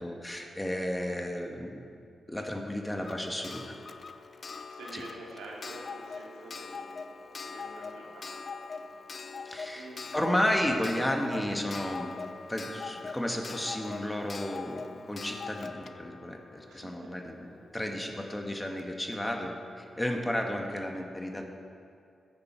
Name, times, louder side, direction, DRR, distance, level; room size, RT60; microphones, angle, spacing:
voice 1, 0.0-1.9 2.3-3.7 4.9-5.0 9.4-12.1 12.5-21.5, left 1 dB, 15° left, 3 dB, 1.7 m, -33 dB
Clock, 3.0-17.6 18.8-18.9 19.1-19.2, left 4 dB, 55° left, 0.5 m, -42 dB
voice 2, 4.7-8.8 9.7-10.1 16.6-17.1 17.8-18.2, right 2 dB, 90° right, -4 dB, 2.6 m, -48 dB
14.0 x 9.6 x 4.7 m, 2.5 s
supercardioid pair, 40°, 0 cm